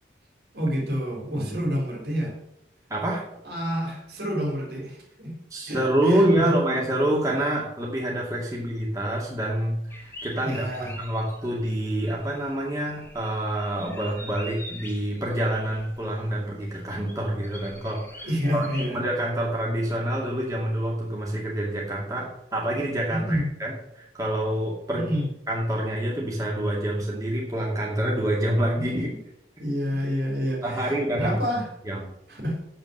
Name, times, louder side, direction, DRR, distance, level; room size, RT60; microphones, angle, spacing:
voice 1, 0.5-2.3 3.4-5.3 5.7-6.6 10.4-11.0 18.2-19.0 23.1-23.5 24.9-25.2 28.8-29.1 29.6-31.7 32.3-32.6, equal, 60° right, 0 dB, 3.4 m, -28 dB
voice 2, 2.9-3.2 5.5-25.1 25.5-29.1 30.6-31.4 31.8-32.1, right 1 dB, 20° right, -4 dB, 2.4 m, -27 dB
sound 1, 9.9-18.9, equal, 10° left, 1.7 m, -45 dB
8.9 x 7.9 x 6.7 m, 0.77 s
head